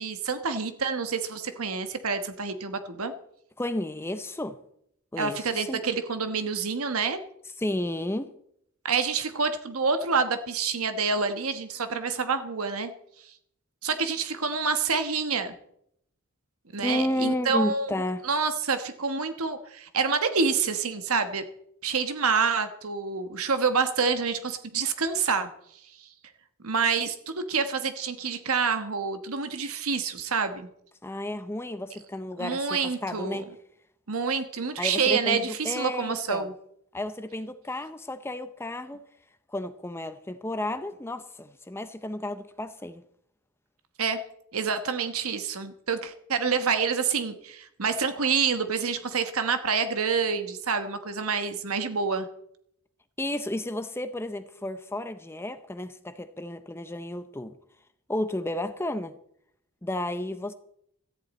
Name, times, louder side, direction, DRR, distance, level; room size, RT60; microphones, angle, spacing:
voice 1, 0.0-3.1 5.2-7.2 8.8-12.9 13.8-15.5 16.7-17.9 18.2-21.4 21.8-25.5 26.0-26.1 26.6-30.7 32.4-33.4 34.1-36.5 44.0-44.2 44.5-52.3, right 5 dB, 75° right, 1.2 m, -27 dB
voice 2, 3.6-4.6 5.1-5.8 7.6-8.3 16.8-18.2 31.0-33.5 34.8-36.5 36.9-39.0 39.5-43.0 53.2-57.5 58.1-59.1 59.8-60.5, left 1 dB, 10° left, 0.5 m, -32 dB
17.0 x 14.0 x 4.2 m
head